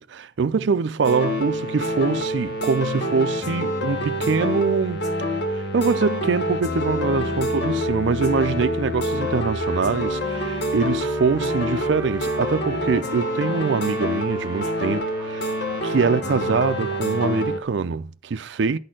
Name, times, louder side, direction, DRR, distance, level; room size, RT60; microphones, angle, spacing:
voice 1, 0.0-5.0 5.5-15.5 15.8-18.8, right 5 dB, 65° right, 0.4 m, -24 dB
sound 1, 1.0-17.6, left 1 dB, 60° left, 1.5 m, -26 dB
Trumpet, 9.6-17.5, right 3 dB, 15° right, 1.1 m, -42 dB
11.0 x 4.3 x 7.5 m
head